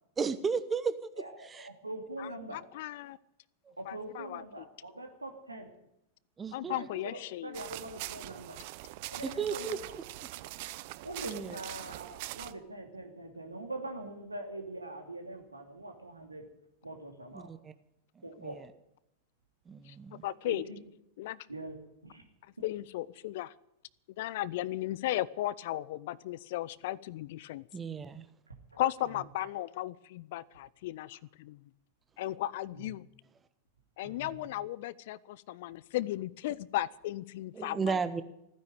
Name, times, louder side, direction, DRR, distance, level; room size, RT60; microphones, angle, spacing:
voice 1, 0.2-1.7 3.7-3.8 6.4-6.8 9.2-9.8 11.3-11.6 17.3-17.7 18.2-18.7 19.7-20.2 27.7-28.2 37.5-38.2, right 5 dB, 20° right, 13 dB, 0.9 m, -34 dB
voice 2, 1.2-2.6 3.8-5.7 6.6-8.6 9.1-10.0 11.0-16.4 16.8-17.5 18.2-18.6 20.4-20.8 21.5-21.8 22.0-22.2 28.7-28.8 29.1-29.2 32.7-32.9 34.0-34.4, right 1 dB, 80° right, 5 dB, 2.6 m, -43 dB
voice 3, 2.2-3.2 3.9-4.6 6.5-7.6 19.9-20.0 20.2-20.6 21.2-21.4 22.6-23.5 24.2-27.6 28.8-31.6 32.2-33.0 34.0-38.0, left 15 dB, 50° left, 22 dB, 0.5 m, -36 dB
sound 1, 7.5-12.5, right 18 dB, 50° right, 0.6 m, -43 dB
15.5 x 10.0 x 9.4 m, 0.81 s
figure-of-eight pair, 90°, 0 cm